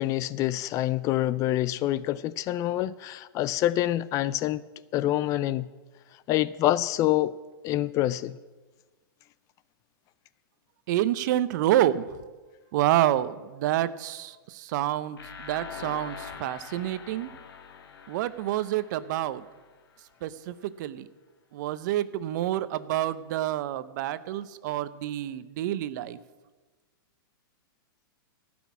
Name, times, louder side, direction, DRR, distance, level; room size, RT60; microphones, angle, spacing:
voice 1, 0.0-4.6 4.9-5.7 6.3-7.3 7.6-8.4, left 14 dB, 25° left, 0.3 m, -26 dB
voice 2, 10.9-12.1 12.7-17.3 18.1-19.4 20.2-21.1 21.5-26.2, right 13 dB, 50° right, 0.7 m, -28 dB
sound 1, 15.2-20.0, left 6 dB, 80° left, 1.5 m, -44 dB
15.5 x 6.2 x 8.4 m
hypercardioid pair, 140°, 12 cm